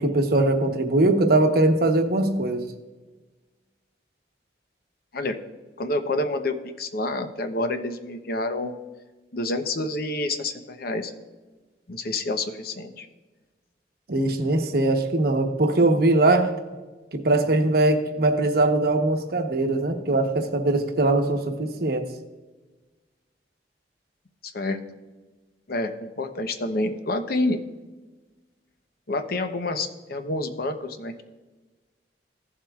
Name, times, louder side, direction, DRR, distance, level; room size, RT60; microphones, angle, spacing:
voice 1, 0.0-2.7 14.1-16.5 17.1-22.1, right 2 dB, 60° right, 5 dB, 1.0 m, -21 dB
voice 2, 5.8-8.7 9.3-11.1 11.9-13.1 24.4-24.8 25.7-27.6 29.1-31.2, left 2 dB, 55° left, 7 dB, 0.8 m, -28 dB
15.5 x 7.4 x 2.4 m, 1.2 s
head